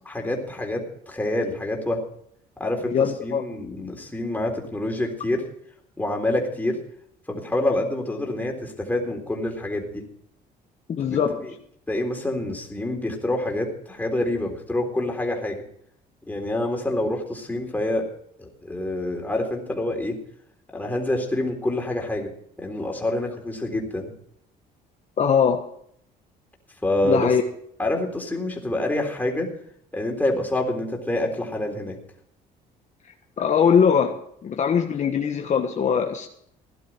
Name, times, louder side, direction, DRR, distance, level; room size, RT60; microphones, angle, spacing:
voice 1, 0.1-2.0 2.6-5.4 6.0-6.8 7.3-10.0 11.0-11.5 11.9-15.6 16.3-18.1 18.4-20.2 20.7-22.3 22.6-24.1 26.8-27.3 27.8-29.5 29.9-32.0, left 1 dB, 10° left, 1 dB, 3.8 m, -27 dB
voice 2, 2.9-3.4 10.9-11.4 25.2-25.6 27.0-27.4 33.4-36.3, left 7 dB, 45° left, 3 dB, 1.4 m, -21 dB
17.0 x 11.5 x 4.6 m, 0.68 s
cardioid pair, 110°, 17 cm